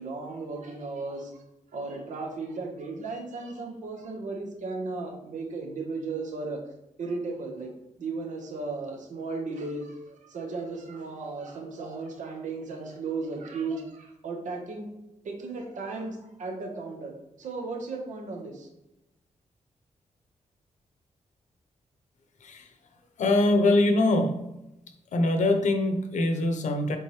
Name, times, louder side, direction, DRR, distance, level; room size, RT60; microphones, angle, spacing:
voice 1, 0.0-1.4 1.7-6.6 7.0-7.7 8.0-14.9 15.2-17.1 17.4-18.7, right 3 dB, 80° right, 2 dB, 1.3 m, -35 dB
voice 2, 23.2-24.4 25.1-27.0, left 2 dB, 75° left, 7 dB, 0.9 m, -23 dB
8.1 x 3.7 x 3.2 m, 0.91 s
cardioid pair, 100°, 13 cm